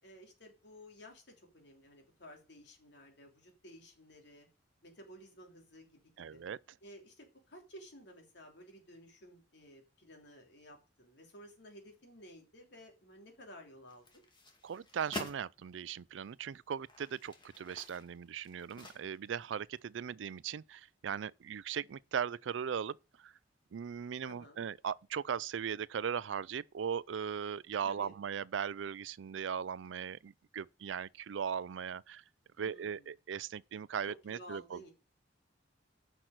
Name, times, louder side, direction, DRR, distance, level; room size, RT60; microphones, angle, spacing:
voice 1, 0.0-4.5 4.8-6.4 6.8-14.0 24.2-24.6 27.8-28.1 32.6-33.1 34.1-34.9, equal, 65° left, 3.2 m, -54 dB
voice 2, 6.2-6.6 14.6-23.3 23.7-32.2 32.6-34.8, right 7 dB, 80° right, 0.4 m, -38 dB
sound 1, 13.9-15.4 16.1-16.2 16.7-19.4 19.7-19.8, left 2 dB, 25° left, 2.2 m, -48 dB
10.0 x 6.0 x 6.5 m
head